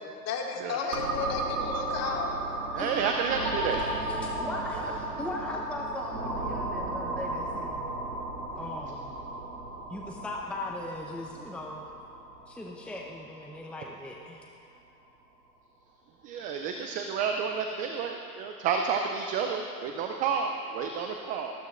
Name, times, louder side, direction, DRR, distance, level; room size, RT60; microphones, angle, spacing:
voice 1, 0.0-2.3, left 5 dB, 35° left, 0 dB, 2.1 m, -33 dB
sound 1, 0.9-14.5, right 2 dB, 80° right, 2.8 m, -35 dB
voice 2, 2.7-3.8 16.2-21.5, right 6 dB, 20° right, 4 dB, 0.4 m, -30 dB
voice 3, 4.0-7.9 8.6-9.1 9.9-11.9 12.5-14.5, left 1 dB, ahead, -1 dB, 0.8 m, -39 dB
19.5 x 14.5 x 2.5 m, 2.4 s
hypercardioid pair, 100°, 47 cm